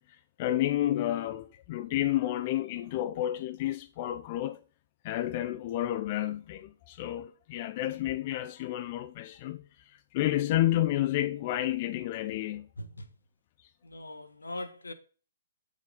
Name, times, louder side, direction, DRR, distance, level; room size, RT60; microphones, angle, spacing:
voice 1, 0.0-4.6 5.0-12.7 13.6-13.7, left 14 dB, 40° left, 0.5 m, -31 dB
voice 2, 13.8-14.9, left 1 dB, 85° left, 1.0 m, -40 dB
7.3 x 6.3 x 3.9 m
figure-of-eight pair, 130°, 0 cm